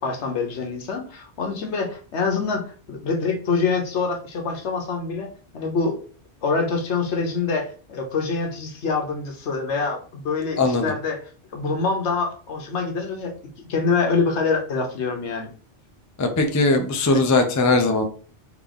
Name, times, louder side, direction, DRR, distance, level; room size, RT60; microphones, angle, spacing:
voice 1, 0.0-6.0 6.4-11.2 11.5-13.3 13.7-15.5, left 4 dB, 80° left, 3 dB, 1.1 m, -25 dB
voice 2, 10.6-10.9 16.2-18.0, left 2 dB, 30° left, 5 dB, 0.3 m, -19 dB
3.7 x 2.8 x 3.4 m, 0.40 s
omnidirectional pair, 1.2 m